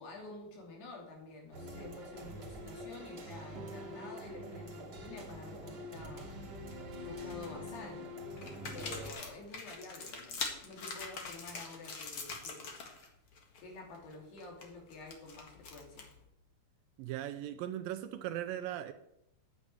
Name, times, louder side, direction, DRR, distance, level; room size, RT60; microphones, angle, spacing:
voice 1, 0.0-6.3 7.0-8.1 8.7-12.7 13.6-16.1, left 3 dB, 80° left, 5.0 m, -49 dB
sound 1, 1.5-9.1, left 1 dB, 35° right, 1.9 m, -45 dB
sound 2, 3.5-10.3, right 3 dB, 50° right, 1.1 m, -56 dB
sound 3, 6.4-6.7 7.2-7.8 8.4-13.1 13.3-13.6 13.9-16.2, left 4 dB, 50° left, 1.8 m, -44 dB
voice 2, 17.0-18.9, right 12 dB, 80° right, 2.2 m, -38 dB
9.9 x 7.4 x 9.4 m
omnidirectional pair, 4.6 m